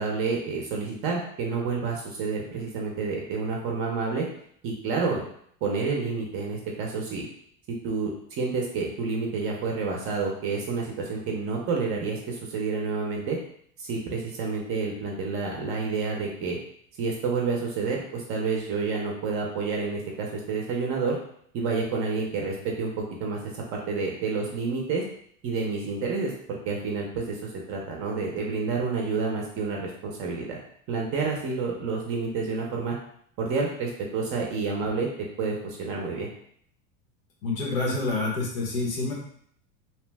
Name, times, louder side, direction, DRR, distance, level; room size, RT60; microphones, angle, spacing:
voice 1, 0.0-4.2 4.6-5.2 5.6-7.3 7.8-13.4 13.8-16.6 17.0-21.2 21.5-25.0 25.4-30.6 30.9-33.0 33.4-35.1 35.4-36.3, right 4 dB, 35° right, -1 dB, 0.5 m, -29 dB
voice 2, 37.4-39.1, left 3 dB, 90° left, -3 dB, 1.1 m, -27 dB
2.8 x 2.0 x 3.2 m, 0.66 s
supercardioid pair, 140°, 40 cm